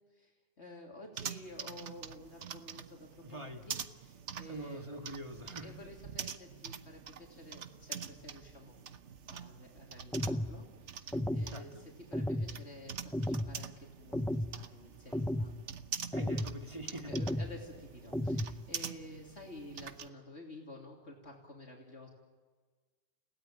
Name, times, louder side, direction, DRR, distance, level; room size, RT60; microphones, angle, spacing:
voice 1, 0.1-4.9 5.6-8.8 9.3-15.5 17.1-22.1, left 1 dB, 70° left, 3.4 m, -51 dB
sound 1, 1.1-20.1, right 7 dB, 90° right, 1.3 m, -46 dB
voice 2, 3.2-3.7 4.4-5.7 11.5-11.8 16.1-17.2, right 1 dB, 25° right, 2.1 m, -44 dB
sound 2, 10.1-10.5 11.1-11.5 12.1-12.5 13.1-13.5 14.1-14.5 15.1-15.5 16.1-16.5 17.1-17.5 18.1-18.5, left 1 dB, 5° left, 0.4 m, -33 dB
30.0 x 17.5 x 9.0 m
omnidirectional pair, 1.2 m